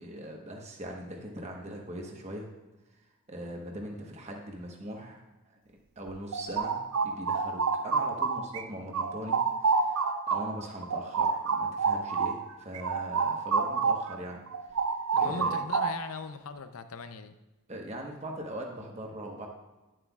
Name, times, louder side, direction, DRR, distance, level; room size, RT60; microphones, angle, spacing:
voice 1, 0.0-2.5 3.3-5.2 5.5-5.6 6.0-6.8 7.0-14.4 15.2-15.6 17.7-19.5, right 1 dB, 30° right, 1 dB, 1.1 m, -40 dB
sound 1, 6.1-8.6 8.9-14.2 14.5-16.2, right 5 dB, 75° right, 0.5 m, -29 dB
voice 2, 15.1-17.4, left 4 dB, 75° left, 10 dB, 0.6 m, -40 dB
11.0 x 7.6 x 2.4 m, 1.1 s
head